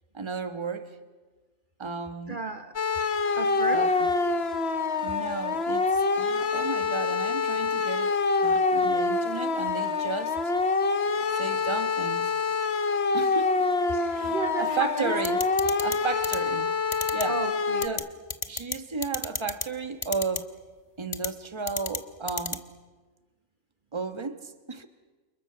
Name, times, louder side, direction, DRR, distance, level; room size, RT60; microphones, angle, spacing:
voice 1, 0.1-0.9 1.8-2.4 3.7-4.1 5.0-8.1 8.4-10.4 11.3-12.3 13.1-13.7 14.1-15.4 15.8-16.7 17.1-17.4 17.8-18.1 18.5-20.5 21.0-22.6 23.9-24.9, right 4 dB, 25° right, 8 dB, 1.3 m, -34 dB
voice 2, 2.3-3.0 3.3-3.9 13.2-13.3 13.9-15.2 17.2-17.9, right 3 dB, 45° right, 6 dB, 1.2 m, -33 dB
sound 1, 2.8-17.9, left 4 dB, 55° left, 1.4 m, -26 dB
sound 2, 15.2-16.0 16.2-16.4 16.9-17.2 17.8-18.0 18.3-18.8 19.0-19.7 20.0-20.4 21.1-21.3 21.7-22.0 22.3-22.6, left 3 dB, 25° left, 1.1 m, -30 dB
29.0 x 28.0 x 6.7 m, 1.3 s
omnidirectional pair, 1.3 m